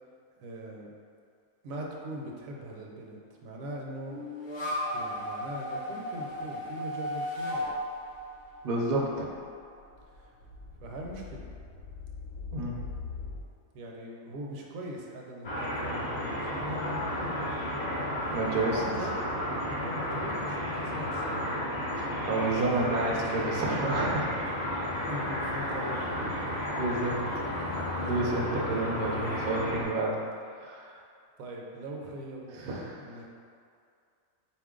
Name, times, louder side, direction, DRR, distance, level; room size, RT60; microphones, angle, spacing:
voice 1, 0.4-0.9 1.6-4.2 4.9-7.7 10.2-10.3 10.8-11.5 13.7-17.5 18.5-19.2 19.7-21.7 22.8-23.3 25.1-26.4 31.4-32.7 33.0-33.3, right 1 dB, 75° right, -1 dB, 1.0 m, -41 dB
sound 1, 4.1-9.3, left 1 dB, 35° left, 0.9 m, -35 dB
sound 2, 7.7-13.4, left 4 dB, 75° left, 1.0 m, -43 dB
voice 2, 8.6-9.3 12.5-12.8 18.3-19.0 22.0-24.3 26.8-27.2 27.9-30.2 30.6-30.9 32.6-33.0, right 2 dB, 60° right, -2 dB, 0.6 m, -30 dB
sound 3, 15.4-29.8, left 1 dB, 60° left, 0.4 m, -32 dB
4.2 x 2.5 x 3.6 m, 2.3 s
omnidirectional pair, 1.5 m